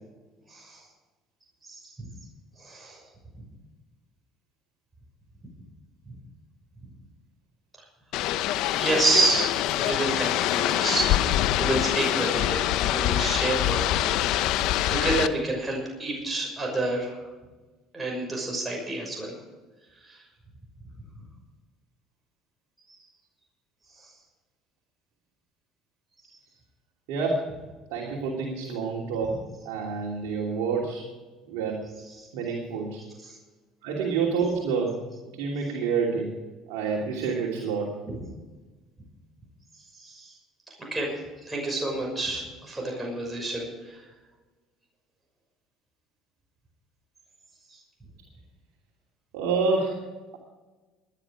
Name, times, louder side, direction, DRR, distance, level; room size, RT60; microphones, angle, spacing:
voice 1, 0.5-0.8 1.7-2.1 2.6-3.0 8.8-9.5 9.8-14.2 14.5-17.2 17.9-19.3 20.0-20.2 22.9-23.0 40.0-40.3 40.8-41.1 41.5-44.0 47.7-47.8, right 2 dB, 20° right, -1 dB, 6.1 m, -29 dB
sound 1, 8.1-15.3, left 13 dB, 70° left, 0.7 m, -25 dB
voice 2, 27.1-27.5 27.9-29.4 29.6-31.1 31.4-31.8 32.3-33.0 33.8-35.0 35.3-36.3 36.7-37.9 49.3-50.0, right 5 dB, 80° right, -2 dB, 2.9 m, -28 dB
19.5 x 11.0 x 5.0 m, 1.2 s
supercardioid pair, 75°, 0 cm